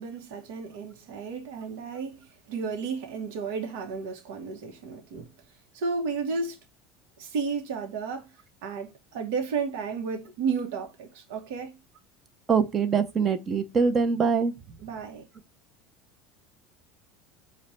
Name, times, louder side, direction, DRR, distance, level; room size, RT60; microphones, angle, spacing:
voice 1, 0.0-5.3 5.7-6.6 7.2-8.3 8.6-11.8 14.8-15.3, right 5 dB, 80° right, 0.8 m, -33 dB
voice 2, 12.5-14.5, right 5 dB, 30° right, 0.6 m, -23 dB
4.8 x 2.2 x 4.1 m
supercardioid pair, 130°, 0 cm